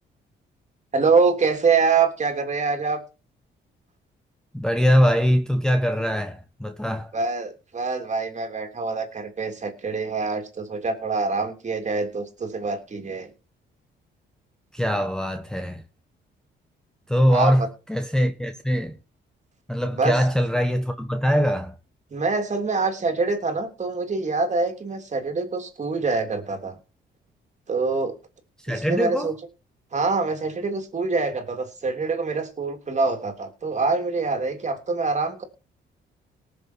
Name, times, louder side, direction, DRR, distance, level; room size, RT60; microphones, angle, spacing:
voice 1, 0.9-3.0 7.1-13.3 17.3-17.7 19.8-20.2 22.1-26.8 27.7-28.1 28.7-29.3 29.9-35.4, right 4 dB, 35° right, 3.2 m, -25 dB
voice 2, 4.5-7.1 14.7-15.8 17.1-19.0 19.7-21.7 28.6-29.3, equal, 5° left, 1.1 m, -22 dB
19.0 x 6.9 x 4.6 m
cardioid pair, 90°, 20 cm